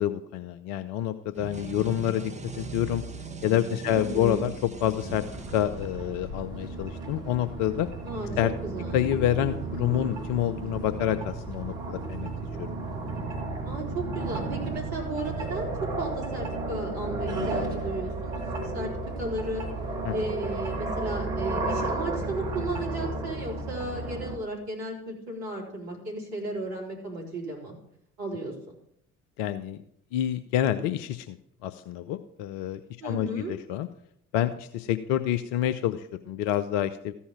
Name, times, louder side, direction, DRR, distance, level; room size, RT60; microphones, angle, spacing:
voice 1, 0.0-3.0 3.4-4.5 4.8-5.2 5.5-7.9 8.4-8.5 8.9-12.3 12.6-12.7 20.0-20.1 29.4-29.8 30.1-31.4 31.6-33.9 34.3-37.1, left 11 dB, 60° left, 10 dB, 0.6 m, -28 dB
sound 1, 1.3-6.2, right 3 dB, 15° right, 0.9 m, -39 dB
voice 2, 3.8-4.4 8.0-9.1 13.6-18.9 19.2-19.6 20.1-27.8 28.2-28.7 33.0-33.5, right 2 dB, 55° right, -4 dB, 4.3 m, -34 dB
sound 2, 5.0-24.4, right 2 dB, 70° right, 1.9 m, -33 dB
14.0 x 5.5 x 5.8 m, 0.70 s
figure-of-eight pair, 50°, 43 cm